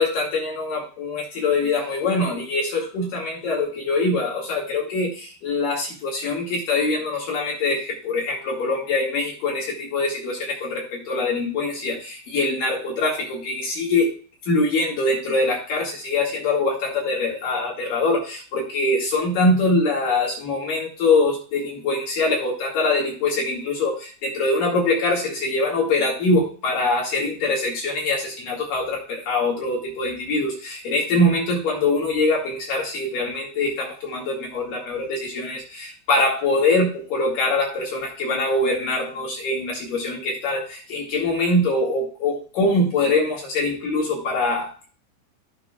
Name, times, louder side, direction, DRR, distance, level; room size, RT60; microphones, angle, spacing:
voice 1, 0.0-14.1 14.5-44.9, left 2 dB, 60° left, -2 dB, 2.7 m, -23 dB
16.5 x 5.8 x 2.3 m, 0.38 s
omnidirectional pair, 5.6 m